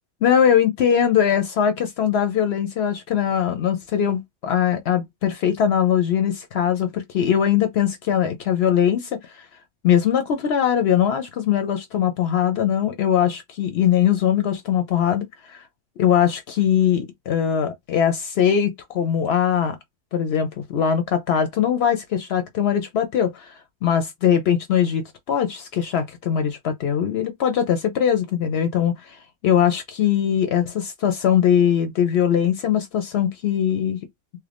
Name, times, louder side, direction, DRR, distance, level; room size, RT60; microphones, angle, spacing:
voice 1, 0.2-9.5 9.8-15.6 16.0-19.8 20.1-34.0, left 9 dB, 70° left, 0.8 m, -21 dB
3.0 x 2.5 x 3.3 m
omnidirectional pair, 1.1 m